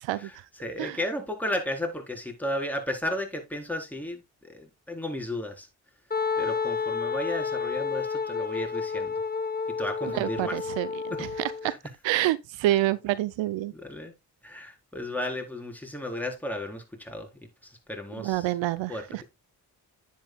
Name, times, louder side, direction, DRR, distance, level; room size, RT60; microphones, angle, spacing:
voice 1, 0.2-5.7 6.4-9.1 9.8-10.6 11.1-11.2 13.7-14.1 14.4-17.3 17.6-18.5 18.9-19.0, left 1 dB, 5° left, 4.1 m, -34 dB
Wind instrument woodwind instrument, 6.1-11.7, left 5 dB, 20° left, 1.2 m, -30 dB
voice 2, 10.1-11.8 12.0-13.7 18.2-19.2, right 15 dB, 80° right, 0.6 m, -28 dB
10.5 x 8.9 x 2.3 m
supercardioid pair, 40°, 44 cm